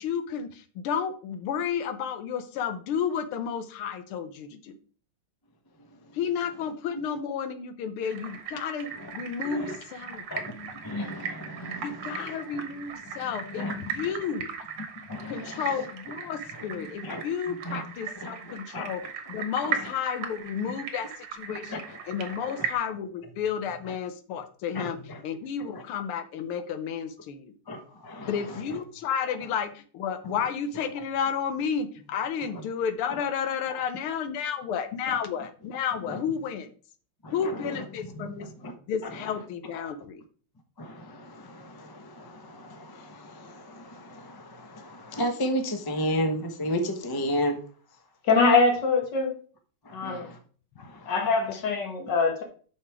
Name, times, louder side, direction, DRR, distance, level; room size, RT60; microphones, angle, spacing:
voice 1, 0.0-4.8 6.1-10.2 11.8-14.5 15.3-19.0 19.3-27.5 28.3-36.7 37.3-38.5 38.9-40.2 50.0-50.2, left 7 dB, 85° left, 10 dB, 1.7 m, -32 dB
sound 1, 8.0-22.7, right 7 dB, 85° right, 2.1 m, -38 dB
voice 2, 9.4-9.8 10.3-12.4 13.1-13.2 13.6-13.7 15.1-15.6 16.7-17.2 17.5-17.8 18.2-18.9 21.5-21.8 22.3-22.4 24.7-25.2 27.7-28.4 36.1-36.2 37.2-37.8 38.4-38.7 40.8-47.6 49.8-50.4 50.8-51.1, equal, 20° left, 5 dB, 0.5 m, -34 dB
voice 3, 48.2-49.4 49.9-50.3 51.1-52.4, left 4 dB, 55° left, 4 dB, 2.1 m, -23 dB
7.1 x 5.9 x 4.8 m, 0.42 s
omnidirectional pair, 2.3 m